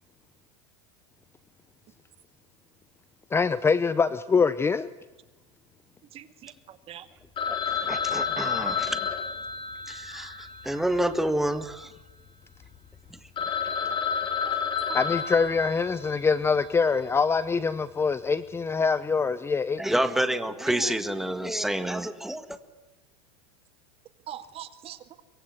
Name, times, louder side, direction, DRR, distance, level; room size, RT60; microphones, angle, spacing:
voice 1, 3.3-4.9 14.9-20.0, left 5 dB, 15° left, 15 dB, 0.8 m, -24 dB
voice 2, 6.1-7.1 13.8-14.0 14.5-14.6 14.9-15.0 20.1-20.3 20.7-21.0 24.3-25.2, right 11 dB, 35° right, 11 dB, 2.1 m, -42 dB
Telephone, 7.4-11.7 12.0-12.1 12.6-12.7 13.1-13.2 13.4-16.3, left 6 dB, 30° left, 4.4 m, -30 dB
voice 3, 7.9-9.0 9.9-11.9 19.8-22.5, right 1 dB, ahead, 9 dB, 1.9 m, -28 dB
24.0 x 22.5 x 9.6 m, 1.1 s
supercardioid pair, 125°, 17 cm